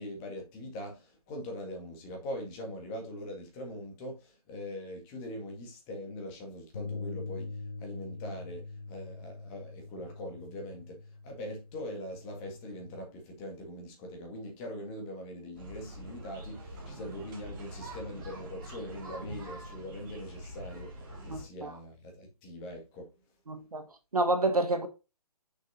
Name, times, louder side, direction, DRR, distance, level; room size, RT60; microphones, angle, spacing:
voice 1, 0.0-23.1, left 1 dB, 20° left, 1.8 m, -42 dB
Bass guitar, 6.7-13.0, left 3 dB, 35° left, 2.5 m, -43 dB
sound 1, 15.6-21.4, right 1 dB, 30° right, 2.3 m, -44 dB
voice 2, 21.3-21.7 23.5-23.8 24.1-24.9, right 2 dB, 70° right, 1.3 m, -28 dB
6.3 x 6.0 x 2.7 m
figure-of-eight pair, 135°, 20 cm